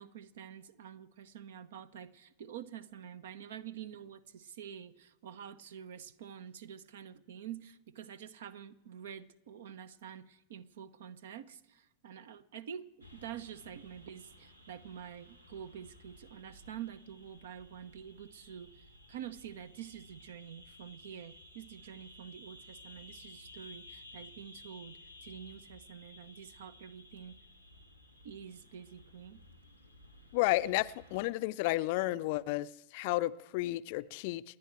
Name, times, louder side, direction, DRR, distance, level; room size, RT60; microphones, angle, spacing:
voice 1, 0.0-12.9 13.1-27.4 28.2-29.4, right 9 dB, 60° right, 17 dB, 0.8 m, -47 dB
sound 1, 13.0-31.3, left 1 dB, 85° right, 1.7 m, -56 dB
voice 2, 30.3-34.4, left 18 dB, 50° left, 15 dB, 0.5 m, -32 dB
28.5 x 9.9 x 4.5 m, 0.97 s
figure-of-eight pair, 90°, 0 cm